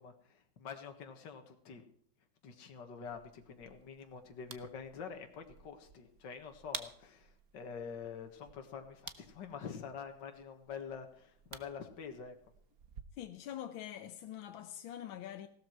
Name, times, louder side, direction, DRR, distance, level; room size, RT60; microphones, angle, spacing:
voice 1, 0.0-1.8 2.4-12.4, left 6 dB, 60° left, 2.2 m, -46 dB
sound 1, 3.0-13.0, right 7 dB, 50° right, 1.4 m, -52 dB
voice 2, 13.1-15.5, left 11 dB, 75° left, 1.6 m, -44 dB
16.5 x 13.0 x 4.6 m
omnidirectional pair, 2.2 m